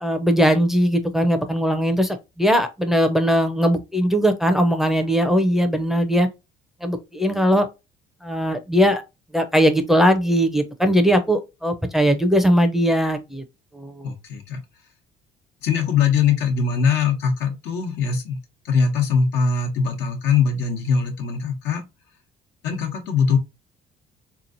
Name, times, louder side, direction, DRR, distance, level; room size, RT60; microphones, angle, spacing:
voice 1, 0.0-6.3 6.8-7.7 8.2-9.0 9.3-13.4 13.7-14.1, equal, ahead, 0.5 m, -19 dB
voice 2, 14.0-14.6 15.6-18.4 18.6-21.8 22.6-23.4, left 6 dB, 90° left, 1.1 m, -21 dB
3.6 x 3.0 x 2.5 m
cardioid pair, 110°, 17 cm